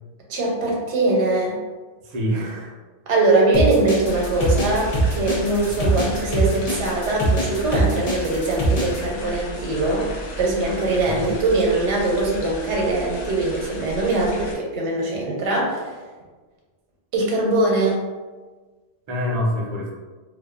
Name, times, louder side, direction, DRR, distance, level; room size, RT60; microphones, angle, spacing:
voice 1, 0.3-1.6 3.1-10.1 10.4-15.9 17.1-18.0, right 2 dB, 85° right, -2 dB, 0.9 m, -22 dB
voice 2, 2.0-2.7 5.8-6.0 11.0-11.3 19.1-19.9, equal, 55° right, -1 dB, 0.4 m, -26 dB
sound 1, 3.5-9.0, right 2 dB, 45° left, 0.5 m, -22 dB
sound 2, 4.0-14.5, equal, 80° left, 0.9 m, -35 dB
2.6 x 2.2 x 2.3 m, 1.3 s
omnidirectional pair, 1.2 m